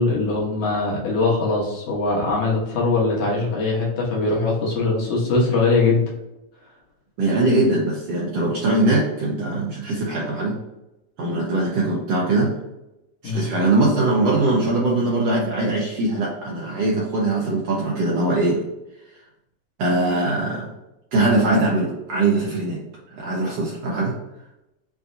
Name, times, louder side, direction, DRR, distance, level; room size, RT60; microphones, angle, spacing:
voice 1, 0.0-6.1 13.2-13.5, left 3 dB, 65° left, -4 dB, 2.4 m, -21 dB
voice 2, 7.2-10.6 11.2-12.5 13.2-18.6 19.8-20.7 21.1-22.8 23.2-24.1, right 2 dB, 85° right, -4 dB, 1.4 m, -21 dB
7.3 x 2.7 x 2.6 m, 0.91 s
omnidirectional pair, 4.0 m